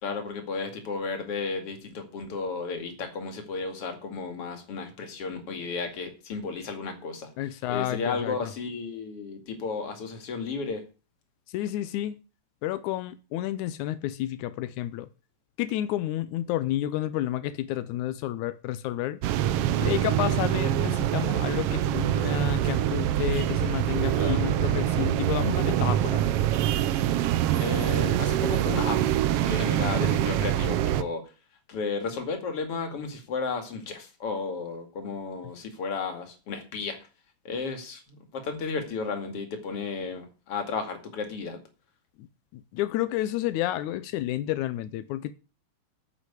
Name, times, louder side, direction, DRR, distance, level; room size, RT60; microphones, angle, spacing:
voice 1, 0.0-7.3 7.7-10.8 24.1-24.4 27.6-29.1 29.5-31.3 31.7-37.0 37.4-41.6, left 4 dB, 55° left, 3.2 m, -33 dB
voice 2, 7.4-8.5 11.5-12.2 12.6-15.1 15.6-19.2 19.8-26.3 42.2-42.3 42.5-45.3, left 13 dB, 90° left, 2.2 m, -30 dB
sound 1, 19.2-31.0, right 11 dB, 70° right, 1.5 m, -25 dB
9.9 x 7.6 x 8.3 m
omnidirectional pair, 3.3 m